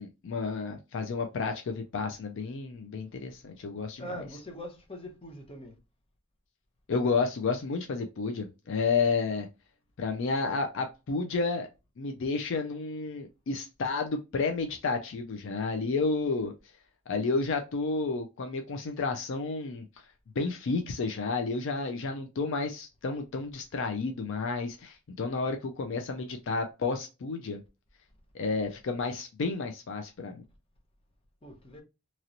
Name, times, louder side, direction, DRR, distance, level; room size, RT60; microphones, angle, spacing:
voice 1, 0.0-4.0 6.9-9.5 10.0-11.7 12.0-16.5 17.1-19.9 20.4-27.6 28.3-30.4, left 4 dB, 60° left, 0.4 m, -31 dB
voice 2, 4.0-5.8 31.4-31.8, equal, 25° left, 0.8 m, -42 dB
2.9 x 2.9 x 2.5 m
head